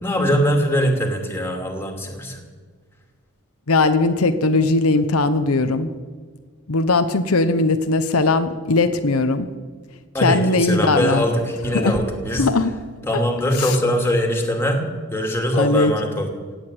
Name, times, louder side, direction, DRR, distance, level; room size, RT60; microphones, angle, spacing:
voice 1, 0.0-2.4 10.1-12.5 13.0-14.8 15.1-16.3, equal, 10° left, 2 dB, 2.5 m, -22 dB
voice 2, 3.7-5.9 6.7-9.5 10.2-11.3 11.7-12.0 12.4-12.7 13.6-13.8 15.5-15.9, left 3 dB, 85° left, 8 dB, 0.9 m, -19 dB
17.0 x 8.2 x 9.5 m, 1.5 s
head